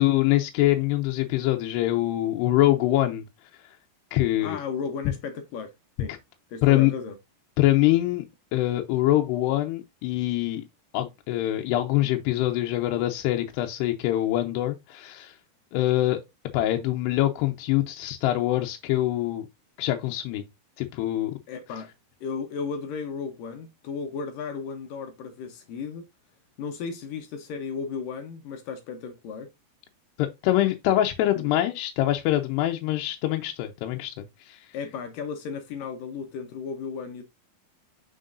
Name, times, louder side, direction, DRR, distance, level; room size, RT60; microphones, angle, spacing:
voice 1, 0.0-3.3 4.1-4.6 6.6-6.9 7.6-8.2 8.5-10.7 10.9-15.4 15.7-16.2 16.5-19.5 19.8-20.4 20.8-21.4 30.2-34.6, left 15 dB, 90° left, 2.9 m, -24 dB
voice 2, 4.4-5.7 6.0-6.1 6.5-7.2 21.5-21.9 22.2-26.1 26.6-29.5 31.3-31.7 34.7-37.2, left 5 dB, 70° left, 2.3 m, -34 dB
7.5 x 6.2 x 2.5 m
omnidirectional pair, 4.7 m